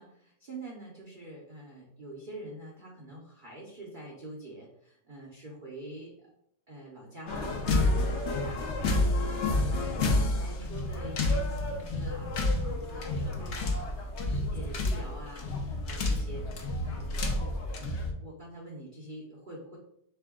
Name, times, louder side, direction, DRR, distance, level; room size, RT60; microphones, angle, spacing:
voice 1, 0.0-6.3 6.7-17.1 17.9-19.8, right 1 dB, 50° right, -3 dB, 0.5 m, -46 dB
sound 1, 7.3-18.1, left 2 dB, 60° left, 0.7 m, -29 dB
3.7 x 3.3 x 3.6 m, 0.75 s
omnidirectional pair, 1.9 m